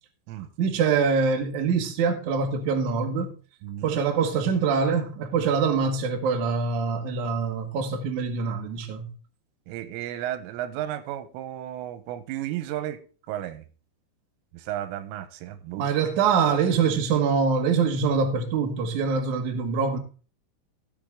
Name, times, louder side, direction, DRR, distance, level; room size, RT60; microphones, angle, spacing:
voice 1, 0.6-3.3 3.8-9.1 15.8-20.0, right 5 dB, 70° right, 1.8 m, -24 dB
voice 2, 3.6-4.0 9.7-13.0 13.3-13.7 14.5-15.9, right 12 dB, 90° right, 3.5 m, -33 dB
17.0 x 5.7 x 3.6 m
omnidirectional pair, 5.7 m